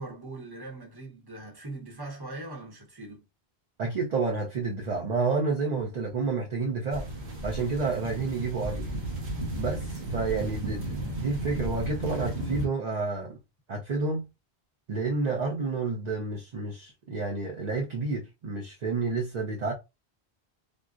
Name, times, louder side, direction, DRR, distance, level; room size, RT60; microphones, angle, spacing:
voice 1, 0.0-3.2, right 2 dB, 25° right, 0.9 m, -41 dB
voice 2, 3.8-7.1 7.4-8.9 9.5-13.4 13.7-14.3 14.9-19.7, right 3 dB, 50° right, 0.6 m, -30 dB
sound 1, 6.9-12.7, right 1 dB, 80° right, 1.1 m, -34 dB
3.7 x 2.0 x 2.4 m
omnidirectional pair, 1.0 m